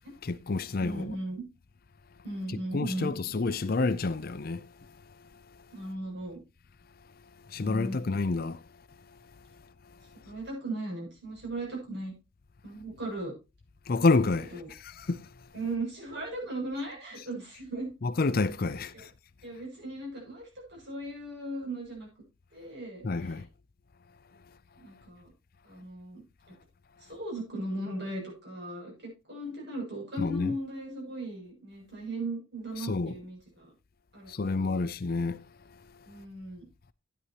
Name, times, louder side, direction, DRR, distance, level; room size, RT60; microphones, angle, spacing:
voice 1, 0.2-1.2 2.5-4.7 7.5-8.6 13.9-15.3 18.0-19.1 23.0-23.5 30.2-30.6 32.8-33.1 34.3-35.4, left 3 dB, 45° left, 0.5 m, -29 dB
voice 2, 0.8-1.4 2.2-3.2 5.7-6.4 7.6-8.0 10.2-12.1 12.6-13.3 14.5-14.7 15.5-17.9 18.9-19.0 19.4-22.1 22.5-23.4 24.8-25.3 25.6-26.2 27.0-33.7 34.1-34.9 36.0-36.6, right 1 dB, 55° right, 7.0 m, -37 dB
13.0 x 9.5 x 2.9 m
head